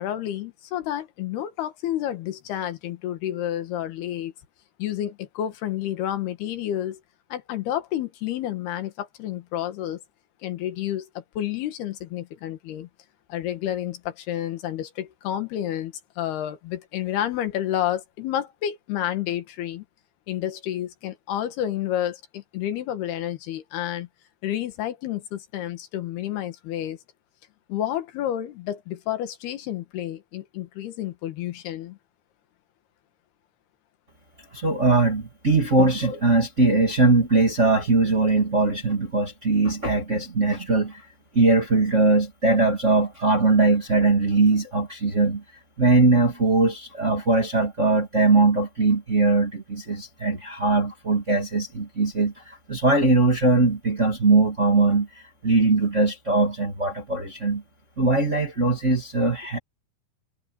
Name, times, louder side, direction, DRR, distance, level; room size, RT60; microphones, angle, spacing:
voice 1, 0.0-4.3 4.8-7.0 7.3-10.0 10.4-12.9 13.3-19.9 20.3-24.1 24.4-27.0 27.7-32.0, left 11 dB, 80° left, 3.5 m, -30 dB
voice 2, 34.5-41.0 41.3-45.4 45.8-55.1 55.4-57.6 58.0-59.6, right 3 dB, 25° right, 1.8 m, -21 dB
omnidirectional pair, 4.5 m